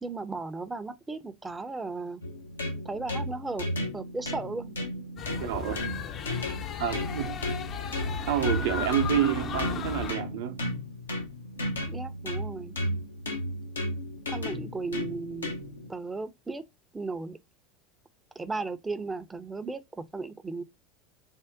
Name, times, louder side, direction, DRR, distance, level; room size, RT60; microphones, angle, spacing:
voice 1, 0.0-2.2 2.8-3.7 3.9-4.7 11.8-12.8 14.3-15.6 15.9-16.6 16.9-17.4 18.4-20.6, right 3 dB, 15° right, 0.5 m, -35 dB
sound 1, 2.2-15.9, left 1 dB, 85° left, 0.6 m, -34 dB
sound 2, 5.2-10.1, left 8 dB, 40° left, 0.5 m, -35 dB
voice 2, 5.4-6.0 6.8-7.5 8.3-10.7, right 10 dB, 65° right, 0.6 m, -29 dB
3.6 x 2.1 x 3.4 m
figure-of-eight pair, 80°, 0 cm